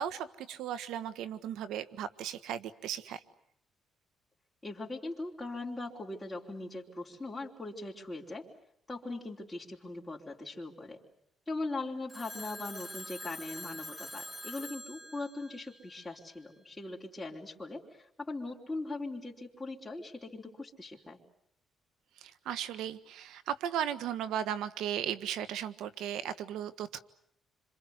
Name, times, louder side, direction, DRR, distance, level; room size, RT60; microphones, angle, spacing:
voice 1, 0.0-3.2 22.2-27.0, right 10 dB, 90° right, 13 dB, 1.6 m, -36 dB
voice 2, 4.6-8.5 8.9-11.0 11.5-21.2, left 2 dB, 15° left, -4 dB, 4.3 m, -40 dB
Telephone, 12.1-16.3, equal, 5° right, 2.6 m, -45 dB
27.0 x 26.5 x 8.2 m, 0.73 s
cardioid pair, 90°, 0 cm